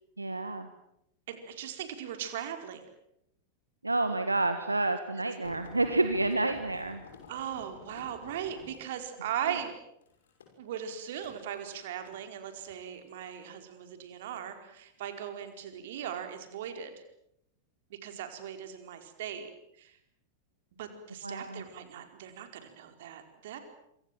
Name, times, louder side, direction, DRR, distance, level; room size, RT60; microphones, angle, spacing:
voice 1, 0.2-0.7 3.8-7.0 21.2-21.6, right 2 dB, 85° right, 8 dB, 1.7 m, -29 dB
voice 2, 1.3-2.8 7.3-9.7 10.6-16.9 17.9-19.5 19.8-20.0 20.8-23.6, right 9 dB, 55° right, 7 dB, 4.5 m, -39 dB
sound 1, 5.4-12.2 13.0-13.4 14.4-15.0 15.7-15.9 16.3-16.4, left 5 dB, 65° left, 6.4 m, -51 dB
26.5 x 25.5 x 7.7 m, 0.78 s
figure-of-eight pair, 90°, 0 cm